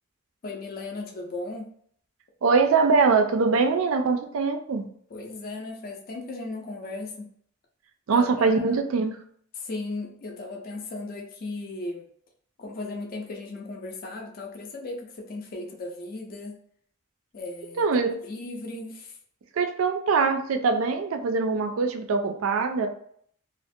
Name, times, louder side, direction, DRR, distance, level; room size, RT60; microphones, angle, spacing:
voice 1, 0.4-1.7 5.1-7.3 8.1-8.8 9.6-12.1 12.6-16.6 17.3-17.8 18.2-19.2, left 2 dB, 45° left, 1 dB, 0.4 m, -36 dB
voice 2, 2.4-4.9 8.1-9.2 17.8-18.2 19.5-22.9, right 4 dB, 90° right, 6 dB, 0.4 m, -23 dB
2.4 x 2.1 x 2.5 m, 0.63 s
head